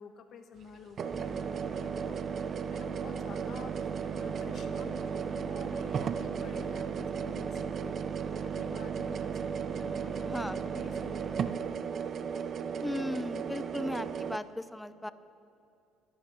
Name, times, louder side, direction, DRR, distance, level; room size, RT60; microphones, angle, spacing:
voice 1, 0.0-9.3 9.6-11.7, left 6 dB, 55° left, 8 dB, 1.0 m, -50 dB
sound 1, 0.6-0.7 1.0-14.4, right 7 dB, 50° right, 0.6 m, -36 dB
sound 2, 1.1-11.5, right 6 dB, 25° right, 1.0 m, -41 dB
voice 2, 10.2-10.6 12.8-15.1, left 1 dB, 10° left, 14 dB, 0.5 m, -36 dB
28.0 x 10.5 x 3.0 m, 2.6 s
supercardioid pair, 80°, 0 cm